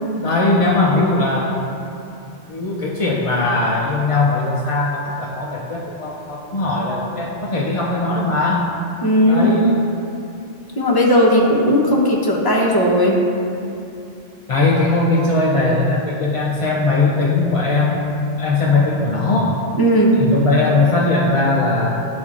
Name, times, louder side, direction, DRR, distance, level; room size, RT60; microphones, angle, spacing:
voice 1, 0.2-1.6 2.5-8.7 9.3-9.7 14.5-19.6 20.2-22.0, left 2 dB, 45° left, -4 dB, 0.4 m, -19 dB
voice 2, 9.0-9.5 10.8-13.3 19.8-20.2, equal, 20° left, -3 dB, 0.8 m, -16 dB
12.0 x 4.2 x 2.5 m, 2.7 s
omnidirectional pair, 1.2 m